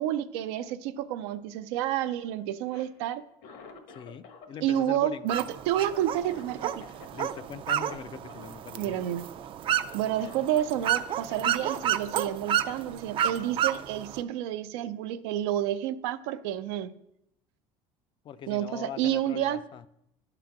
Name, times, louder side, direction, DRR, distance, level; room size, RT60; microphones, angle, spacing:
voice 1, 0.0-3.2 4.6-6.9 8.8-9.2 9.9-16.9 18.5-19.6, right 11 dB, 90° right, 0.5 m, -30 dB
Cough, 2.5-4.5 4.7-7.4 7.7-7.9 8.3-8.5 8.7-9.3 9.7-9.8 10.2-11.9 12.7-12.8, left 5 dB, 75° left, 1.3 m, -50 dB
voice 2, 3.9-5.3 7.1-9.1 18.2-19.9, left 8 dB, 40° left, 0.4 m, -42 dB
sound 1, 5.3-14.2, right 10 dB, 40° right, 0.4 m, -31 dB
11.0 x 3.9 x 5.9 m
cardioid pair, 120°, 13 cm